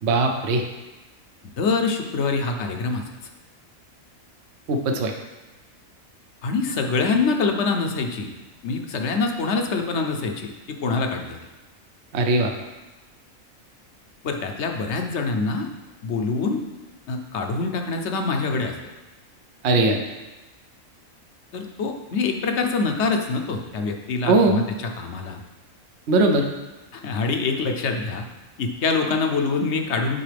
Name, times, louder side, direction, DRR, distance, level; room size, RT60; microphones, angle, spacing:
voice 1, 0.0-0.6 4.7-5.1 12.1-12.5 19.6-20.0 24.3-24.6 26.1-26.4, right 2 dB, 60° right, 4 dB, 0.9 m, -19 dB
voice 2, 1.6-3.0 6.4-8.3 8.6-11.4 14.2-15.7 16.0-16.6 17.1-18.7 21.5-25.4 26.9-28.3 28.6-30.2, left 4 dB, 60° left, 4 dB, 1.0 m, -25 dB
9.8 x 4.5 x 3.4 m, 1.1 s
omnidirectional pair, 1.4 m